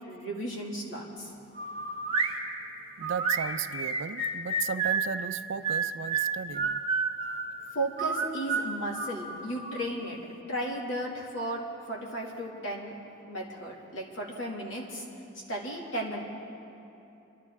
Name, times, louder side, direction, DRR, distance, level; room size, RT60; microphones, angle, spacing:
voice 1, 0.1-1.3 7.7-10.2 10.5-12.9 13.3-15.0 15.5-16.2, right 1 dB, 65° left, -2 dB, 2.3 m, -35 dB
sound 1, 1.5-2.4 3.0-5.1 5.6-7.5 8.0-9.8, right 4 dB, 30° right, 0.9 m, -30 dB
voice 2, 3.0-6.8, right 6 dB, 60° right, 14 dB, 0.4 m, -35 dB
24.5 x 12.5 x 3.6 m, 2.9 s
head